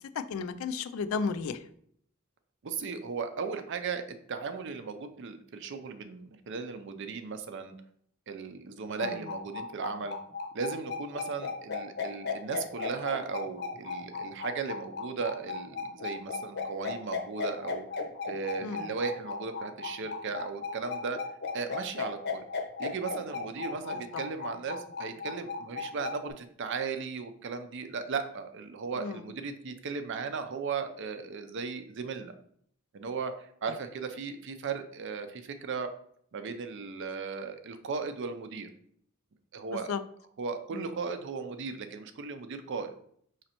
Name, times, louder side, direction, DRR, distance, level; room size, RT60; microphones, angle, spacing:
voice 1, 0.3-1.6 18.6-18.9 29.0-29.2 39.7-40.0 40.7-40.9, left 5 dB, 80° left, 12 dB, 0.3 m, -33 dB
voice 2, 2.6-4.0 4.3-7.7 8.3-10.2 10.5-17.8 18.3-21.2 21.5-22.5 22.8-32.3 32.9-35.9 36.3-38.7 39.5-39.9 40.4-42.9, right 5 dB, 60° right, 9 dB, 0.5 m, -36 dB
sound 1, 9.0-26.3, left 5 dB, 55° left, 0.7 m, -36 dB
5.0 x 3.2 x 2.9 m, 0.65 s
head